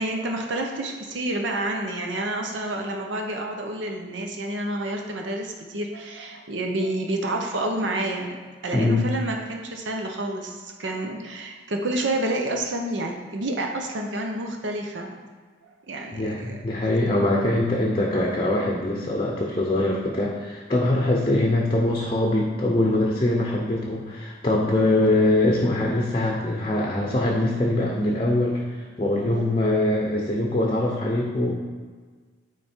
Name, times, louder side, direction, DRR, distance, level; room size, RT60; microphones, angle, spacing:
voice 1, 0.0-8.4 8.6-15.2 15.9-16.6 18.1-18.4, right 1 dB, 75° right, 2 dB, 0.7 m, -29 dB
voice 2, 8.7-9.1 16.1-31.5, left 1 dB, 30° left, -1 dB, 0.7 m, -23 dB
9.0 x 3.3 x 4.4 m, 1.5 s
head